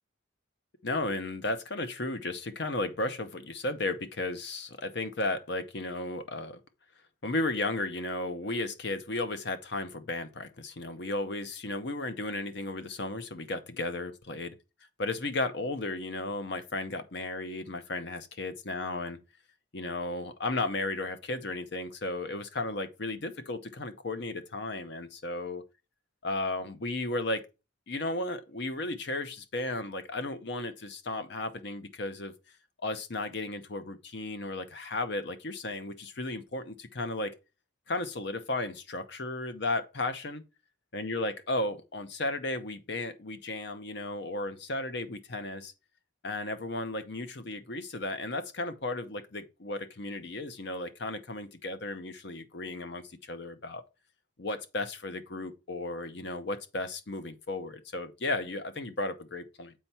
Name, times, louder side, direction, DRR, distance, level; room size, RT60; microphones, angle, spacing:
voice 1, 0.8-6.6 7.2-14.5 15.0-19.2 19.7-25.6 26.2-27.5 27.9-32.3 32.8-37.3 37.9-40.4 40.9-45.7 46.2-53.8 54.4-59.7, left 2 dB, 55° left, 0.8 m, -34 dB
7.4 x 4.5 x 4.2 m
head